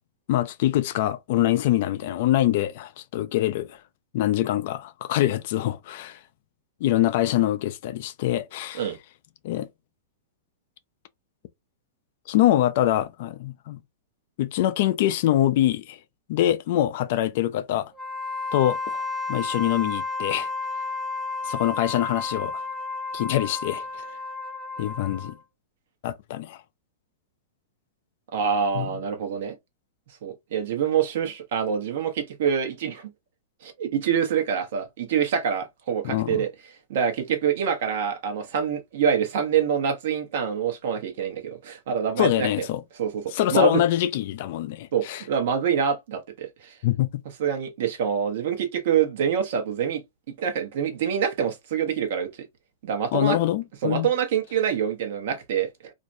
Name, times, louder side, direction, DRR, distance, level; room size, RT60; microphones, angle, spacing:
voice 1, 0.3-3.8 4.1-6.2 6.8-8.8 9.4-9.7 12.3-13.8 14.4-16.0 16.3-17.9 18.5-19.0 19.3-20.5 21.4-22.6 23.1-23.8 24.8-25.4 26.0-26.6 28.8-28.9 36.0-36.4 42.2-42.8 43.3-45.2 46.8-47.1 53.1-54.1, left 13 dB, 60° left, 0.3 m, -24 dB
Wind instrument woodwind instrument, 17.9-25.4, left 3 dB, 15° right, 0.5 m, -32 dB
voice 2, 28.3-29.6 30.2-33.1 33.6-36.5 36.9-42.7 43.0-43.8 44.9-46.8 47.4-50.0 50.4-52.3 52.8-53.4 53.8-55.9, right 7 dB, 65° right, 0.8 m, -26 dB
2.5 x 2.1 x 2.5 m
hypercardioid pair, 125°, 0 cm